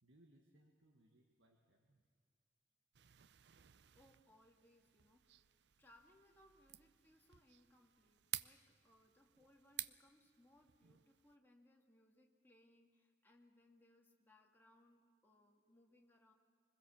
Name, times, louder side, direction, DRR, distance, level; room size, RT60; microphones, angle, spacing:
voice 1, 0.0-2.1, right 1 dB, 90° right, 2 dB, 1.7 m, -70 dB
sound 1, 2.9-11.4, right 14 dB, 60° right, 0.5 m, -53 dB
voice 2, 4.0-5.5 5.8-16.3, left 1 dB, 10° left, 0 dB, 2.0 m, -70 dB
25.0 x 20.5 x 7.2 m, 2.1 s
head